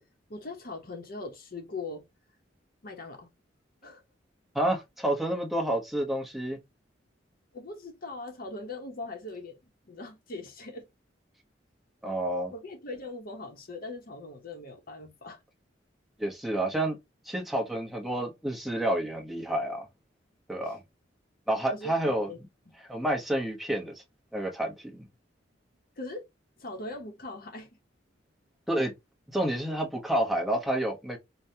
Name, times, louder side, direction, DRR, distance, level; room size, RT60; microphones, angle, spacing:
voice 1, 0.3-2.0 2.8-3.3 3.8-4.0 7.5-9.5 9.9-10.9 12.5-15.4 21.7-22.4 22.7-22.8 26.0-26.3 26.6-27.7, left 2 dB, 50° left, 0.9 m, -40 dB
voice 2, 4.5-6.6 12.0-12.5 16.2-17.0 17.3-19.9 20.5-20.8 21.5-22.3 22.9-23.9 24.3-25.1 28.7-28.9 29.3-31.2, right 1 dB, ahead, 0.9 m, -29 dB
5.0 x 2.2 x 2.7 m
head